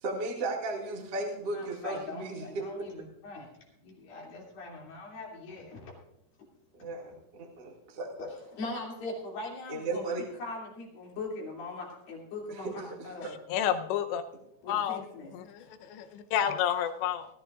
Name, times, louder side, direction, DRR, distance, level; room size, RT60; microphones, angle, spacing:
voice 1, 0.0-2.7 6.8-8.2 9.7-10.3, right 2 dB, 35° right, -2 dB, 1.8 m, -35 dB
voice 2, 1.5-5.9 8.2-13.3 14.6-15.3, left 2 dB, 55° left, -2 dB, 4.3 m, -41 dB
voice 3, 13.5-14.2 14.7-15.0 15.3-17.3, left 10 dB, 85° left, 8 dB, 3.1 m, -30 dB
20.0 x 13.5 x 2.5 m, 0.79 s
omnidirectional pair, 5.1 m